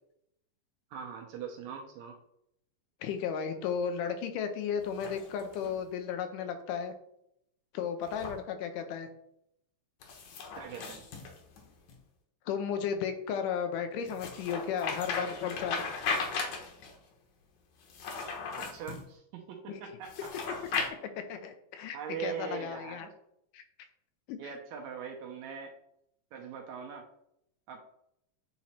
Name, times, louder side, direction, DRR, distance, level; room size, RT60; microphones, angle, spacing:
voice 1, 0.9-2.2 10.6-11.0 18.6-20.3 21.9-23.1 24.4-25.7 26.3-27.1 27.7-27.8, right 7 dB, 75° right, 2 dB, 1.8 m, -41 dB
voice 2, 3.0-6.9 7.7-9.1 12.5-15.9 19.7-19.8 21.2-23.1 23.5-23.6 24.3-24.4, left 7 dB, 80° left, 7 dB, 2.3 m, -34 dB
sound 1, 4.8-5.8 8.0-8.4 10.0-12.0 14.1-17.0 17.8-19.0 20.0-20.9, left 4 dB, 65° left, 2.2 m, -37 dB
9.1 x 3.1 x 4.3 m, 0.75 s
omnidirectional pair, 3.8 m